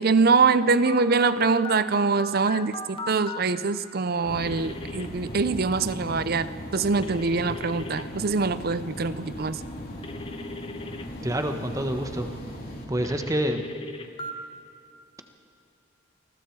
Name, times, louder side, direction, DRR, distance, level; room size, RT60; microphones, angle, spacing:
voice 1, 0.0-9.6, right 4 dB, 55° right, 14 dB, 0.6 m, -24 dB
Telephone, 0.9-3.4 4.4-5.1 7.0-8.0 10.0-11.0 13.0-14.3, left 2 dB, 30° left, 1.2 m, -38 dB
sound 1, 4.2-12.8, equal, 50° left, 3.3 m, -38 dB
voice 2, 11.2-12.3 12.9-13.6, right 1 dB, 20° right, 6 dB, 1.3 m, -27 dB
28.5 x 21.0 x 4.7 m, 2.7 s
head